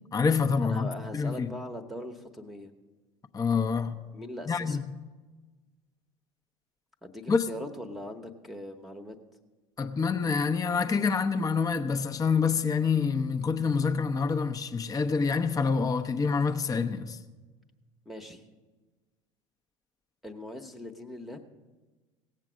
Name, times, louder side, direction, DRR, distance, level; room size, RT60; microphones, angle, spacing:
voice 1, 0.1-1.5 3.3-4.0 4.5-5.0 7.3-7.5 9.8-17.2, left 5 dB, 20° left, 0.7 m, -27 dB
voice 2, 0.6-2.7 4.1-4.8 7.0-9.2 18.1-18.4 20.2-21.4, left 1 dB, ahead, 1.0 m, -40 dB
17.0 x 7.5 x 6.2 m
hypercardioid pair, 75°, 17 cm